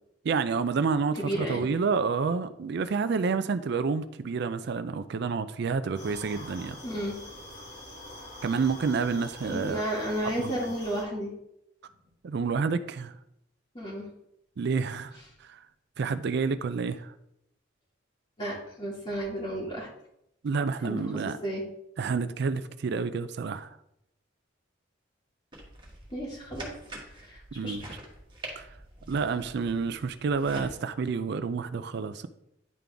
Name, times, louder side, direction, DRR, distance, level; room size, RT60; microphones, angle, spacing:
voice 1, 0.2-6.8 8.4-9.8 10.2-10.5 12.2-13.2 14.6-15.6 16.0-17.1 20.4-21.4 22.0-23.8 27.6-27.8 28.6-28.7 29.1-32.3, right 5 dB, 60° right, 12 dB, 0.4 m, -29 dB
voice 2, 1.2-1.7 6.8-7.1 9.5-11.3 13.7-14.0 18.4-19.9 20.8-21.1 21.4-21.6 26.1-26.7 27.2-27.8, equal, 25° left, -6 dB, 1.9 m, -32 dB
sound 1, 5.9-11.0, left 1 dB, 60° left, 2.8 m, -45 dB
sound 2, 25.5-30.7, right 1 dB, 25° right, 1.5 m, -45 dB
10.5 x 3.8 x 3.4 m, 0.80 s
head